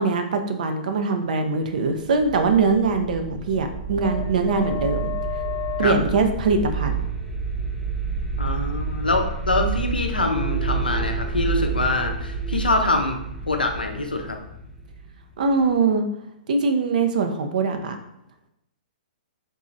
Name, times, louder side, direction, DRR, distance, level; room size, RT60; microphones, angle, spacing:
voice 1, 0.0-5.1 5.8-7.0 15.4-16.0 16.5-18.0, right 4 dB, 60° right, 6 dB, 0.5 m, -22 dB
sound 1, 2.1-15.7, right 3 dB, ahead, 0.6 m, -29 dB
voice 2, 8.4-13.2 13.5-14.4, left 2 dB, 90° left, 4 dB, 0.5 m, -24 dB
3.8 x 2.9 x 2.6 m, 0.80 s
figure-of-eight pair, 115°, 5 cm